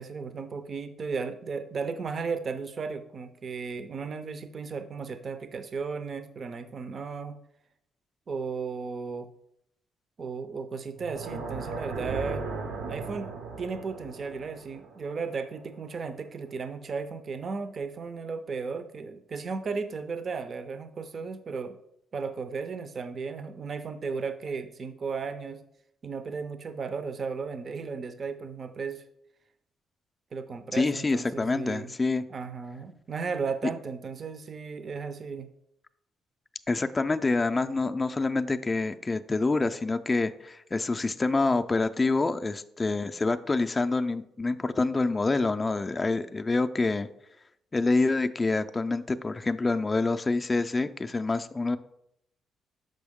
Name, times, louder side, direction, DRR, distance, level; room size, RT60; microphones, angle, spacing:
voice 1, 0.0-7.4 8.3-9.3 10.2-12.4 12.9-13.3 13.6-21.8 22.1-25.6 26.0-29.0 30.3-31.9 32.3-35.5, right 5 dB, 45° right, 10 dB, 0.4 m, -35 dB
sound 1, 10.9-16.1, right 4 dB, 85° right, 0.7 m, -37 dB
voice 2, 30.7-32.2 36.7-47.1 47.7-51.8, left 3 dB, 25° left, 8 dB, 0.3 m, -27 dB
6.1 x 5.2 x 3.6 m, 0.77 s
cardioid pair, 90°, 0 cm